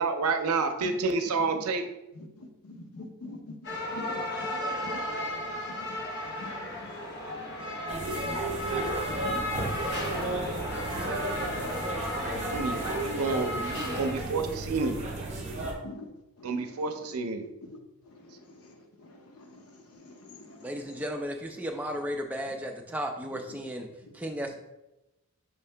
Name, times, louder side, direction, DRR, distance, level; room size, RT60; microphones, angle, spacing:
voice 1, 0.0-1.8 12.5-15.0 16.4-17.4, right 4 dB, 85° right, 7 dB, 0.5 m, -29 dB
voice 2, 0.8-1.7 2.1-5.0 5.7-6.0 6.2-6.9 7.3-7.6 8.7-9.4 10.1-10.2 11.9-12.0 14.0-14.1 15.5-16.1 16.4-17.2 17.6-21.1 21.5-21.6 21.9-22.0 22.5-22.6 22.8-24.5, left 2 dB, 85° left, 4 dB, 0.7 m, -47 dB
sound 1, 3.6-14.1, left 1 dB, 50° left, 0.7 m, -34 dB
sound 2, 7.9-15.7, right 2 dB, 30° right, 0.7 m, -33 dB
voice 3, 20.6-23.9 24.1-24.5, equal, 5° right, 3 dB, 0.3 m, -34 dB
5.8 x 2.7 x 3.3 m, 0.96 s
head